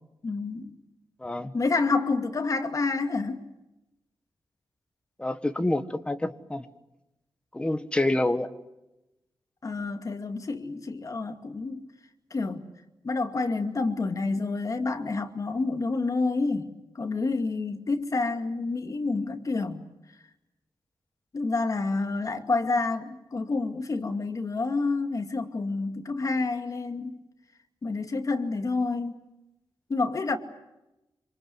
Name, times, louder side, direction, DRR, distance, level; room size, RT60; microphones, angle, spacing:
voice 1, 0.2-0.7 1.5-3.5 9.6-11.9 12.3-12.6 13.0-19.8 21.3-27.2 27.8-29.2 29.9-30.4, left 3 dB, 40° left, 2.4 m, -28 dB
voice 2, 1.2-1.5 5.2-6.7 7.5-8.5, left 1 dB, 10° left, 1.5 m, -27 dB
27.0 x 26.5 x 8.0 m
wide cardioid pair, 150°, 9 cm